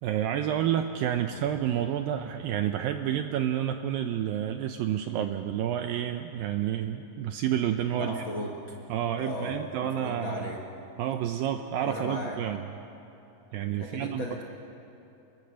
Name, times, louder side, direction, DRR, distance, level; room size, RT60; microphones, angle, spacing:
voice 1, 0.0-8.2 8.9-10.5 11.0-12.7 13.5-14.3, right 10 dB, 85° right, 7 dB, 2.0 m, -29 dB
voice 2, 8.0-8.7 9.2-10.6 11.8-12.4 13.8-14.4, left 1 dB, 70° left, -2 dB, 1.1 m, -36 dB
26.5 x 22.0 x 6.4 m, 2.9 s
omnidirectional pair, 4.9 m